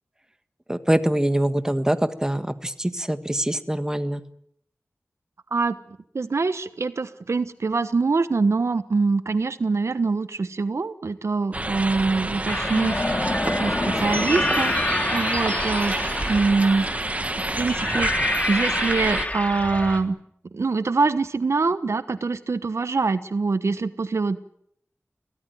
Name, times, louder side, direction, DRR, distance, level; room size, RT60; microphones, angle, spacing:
voice 1, 0.7-4.2, right 1 dB, 10° right, 10 dB, 1.7 m, -24 dB
voice 2, 6.1-16.0 16.3-16.9 17.5-20.2 20.5-24.4, right 4 dB, 70° right, 12 dB, 1.1 m, -24 dB
sound 1, 11.5-19.3, right 2 dB, 30° right, 1.4 m, -28 dB
sound 2, 12.5-20.0, left 2 dB, 30° left, 3.2 m, -27 dB
24.0 x 17.5 x 9.2 m, 0.71 s
wide cardioid pair, 80°, 5 cm